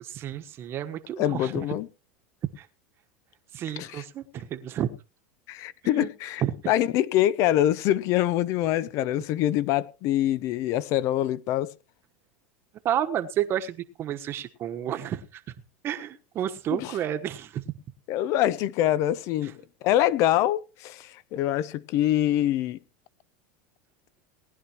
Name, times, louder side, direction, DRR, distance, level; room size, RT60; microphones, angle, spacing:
voice 1, 0.1-1.8 2.6-2.7 3.5-4.9 5.8-6.1 6.4-6.5 12.8-15.4 15.8-17.6 19.4-19.5, right 10 dB, 40° right, 1.3 m, -31 dB
voice 2, 1.2-1.9 3.8-4.0 5.5-11.7 16.8-16.9 18.1-19.5 19.8-22.8, left 13 dB, 55° left, 0.8 m, -25 dB
19.0 x 10.5 x 3.0 m
supercardioid pair, 105°, 6 cm